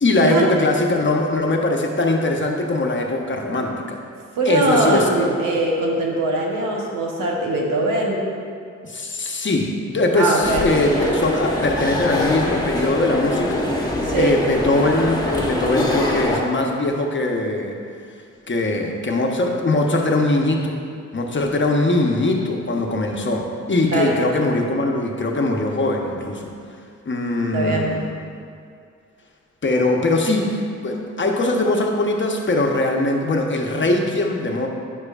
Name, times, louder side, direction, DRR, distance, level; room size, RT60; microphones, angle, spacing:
voice 1, 0.0-4.0 4.4-5.3 8.8-13.7 14.2-17.8 18.5-20.8 21.1-26.5 27.0-28.0 29.6-34.7, left 2 dB, 35° left, 1 dB, 1.0 m, -21 dB
voice 2, 4.4-8.3 10.2-10.7 14.0-14.4 23.9-24.2 27.5-28.1, right 2 dB, 85° right, -1 dB, 1.1 m, -21 dB
sound 1, 10.4-16.4, left 1 dB, 10° left, 1.5 m, -24 dB
9.6 x 6.5 x 2.5 m, 2.4 s
supercardioid pair, 45°, 32 cm